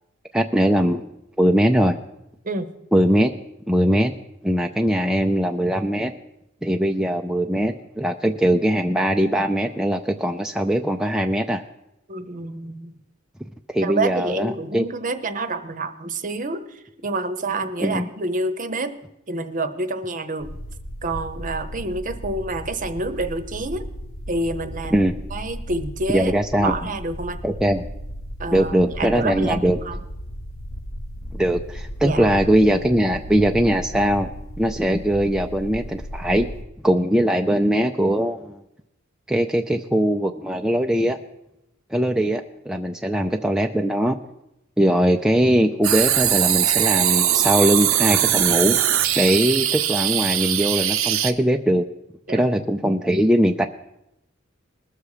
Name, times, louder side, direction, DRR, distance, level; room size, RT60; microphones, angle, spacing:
voice 1, 0.3-1.0 1.4-2.0 2.9-3.3 3.7-4.1 4.4-6.1 6.6-11.6 13.7-14.9 17.8-18.1 24.9-25.1 26.1-26.7 27.4-27.8 28.5-29.8 31.3-34.3 34.6-36.5 36.8-38.6 39.3-41.2 41.9-44.2 44.8-48.8 49.2-51.9 52.3-53.7, equal, 5° right, 3 dB, 0.4 m, -20 dB
voice 2, 12.1-12.9 13.8-19.0 19.3-20.5 21.0-23.9 24.3-26.3 26.6-27.4 28.4-30.0 32.0-32.3 52.3-52.4, right 2 dB, 40° right, 10 dB, 0.8 m, -28 dB
sound 1, 20.4-36.6, equal, 85° left, 1.1 m, -35 dB
sound 2, 45.8-51.3, right 11 dB, 90° right, 0.8 m, -20 dB
20.5 x 7.0 x 4.9 m, 0.86 s
head